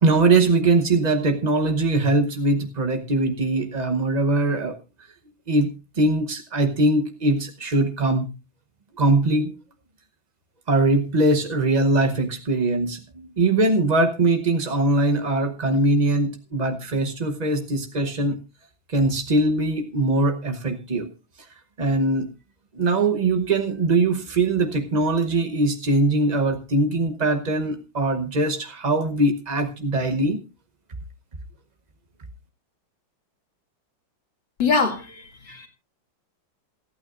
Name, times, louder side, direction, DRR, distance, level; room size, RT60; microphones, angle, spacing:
voice 1, 0.0-4.8 5.5-8.3 9.0-9.5 10.7-18.4 18.9-21.1 21.8-22.3 22.7-30.4, right 2 dB, 40° right, 6 dB, 0.6 m, -21 dB
voice 2, 34.6-35.7, left 4 dB, 65° left, 3 dB, 3.1 m, -24 dB
27.5 x 9.2 x 2.5 m, 0.30 s
omnidirectional pair, 2.2 m